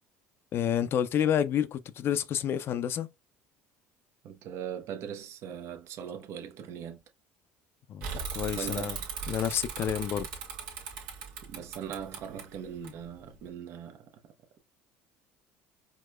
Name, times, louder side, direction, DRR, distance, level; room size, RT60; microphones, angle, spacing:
voice 1, 0.5-3.1 7.9-8.1 8.3-9.0 9.3-10.3, left 9 dB, 50° left, 0.4 m, -29 dB
voice 2, 4.2-7.0 8.5-9.0 11.4-14.1, right 8 dB, 60° right, 0.8 m, -40 dB
Bicycle / Mechanisms, 8.0-13.5, right 6 dB, 80° right, 1.2 m, -39 dB
4.8 x 2.1 x 2.3 m
supercardioid pair, 90°, 5 cm